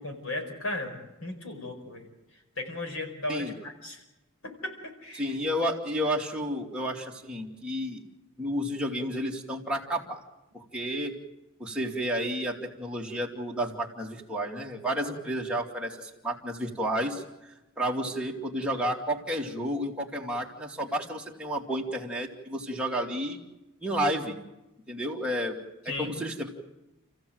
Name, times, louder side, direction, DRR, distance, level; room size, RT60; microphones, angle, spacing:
voice 1, 0.0-2.1 2.6-4.0 4.4-4.7 5.0-5.4 25.9-26.1, left 2 dB, 75° left, 5 dB, 4.9 m, -36 dB
voice 2, 5.2-8.0 8.4-10.2 10.5-11.1 11.6-23.4 23.8-24.4 24.9-25.5 25.8-26.5, equal, 5° right, -2 dB, 2.5 m, -31 dB
29.5 x 15.5 x 7.9 m, 1.0 s
head